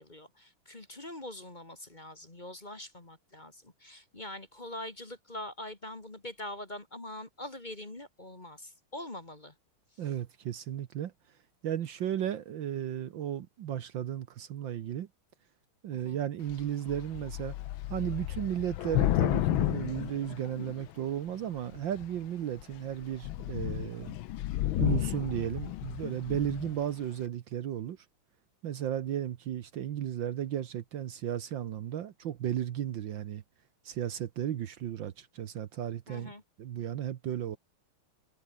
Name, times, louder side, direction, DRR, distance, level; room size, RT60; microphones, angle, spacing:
voice 1, 0.0-9.5 9.9-10.1 15.9-16.2 36.1-36.4, left 1 dB, 20° left, 2.1 m, -44 dB
voice 2, 10.0-11.1 11.6-15.1 15.8-17.5 17.9-24.2 24.8-28.0 28.6-33.4 33.9-36.3 36.6-37.6, right 10 dB, 65° right, 1.6 m, -34 dB
Thunder / Rain, 16.5-16.6 16.9-21.0 21.7-22.2 22.6-22.8 23.0-26.8, left 14 dB, 75° left, 1.5 m, -32 dB
omnidirectional pair, 2.4 m